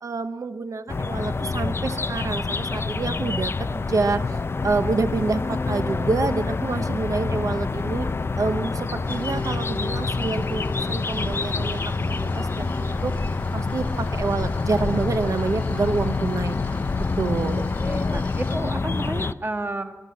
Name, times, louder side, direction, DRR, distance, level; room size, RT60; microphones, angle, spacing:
voice 1, 0.0-4.4 4.6-8.1 8.4-12.7 13.0-13.1 13.5-16.6 16.9-17.7, right 4 dB, 70° right, 9 dB, 0.9 m, -27 dB
sound 1, 0.9-19.3, left 3 dB, 45° left, 0.6 m, -27 dB
sound 2, 9.0-18.6, left 1 dB, 25° left, 3.4 m, -42 dB
voice 2, 17.5-20.0, right 2 dB, 40° right, 6 dB, 1.6 m, -32 dB
24.5 x 13.5 x 8.5 m, 1.1 s
wide cardioid pair, 105°, 6 cm